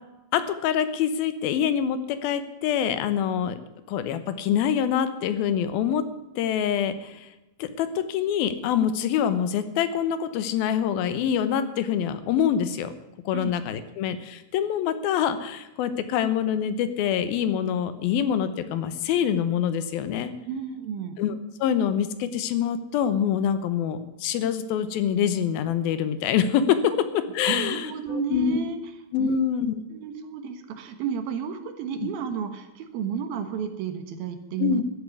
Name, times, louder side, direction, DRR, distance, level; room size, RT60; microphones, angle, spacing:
voice 1, 0.3-3.6 3.9-6.0 6.4-7.3 7.6-12.9 13.3-20.3 21.2-28.6 29.1-29.7 34.6-34.8, left 8 dB, 85° left, 11 dB, 2.9 m, -25 dB
voice 2, 20.5-21.2 27.5-28.8 29.2-29.4 29.9-34.8, right 7 dB, 85° right, 8 dB, 3.2 m, -32 dB
13.5 x 8.3 x 9.7 m, 0.98 s
omnidirectional pair, 4.2 m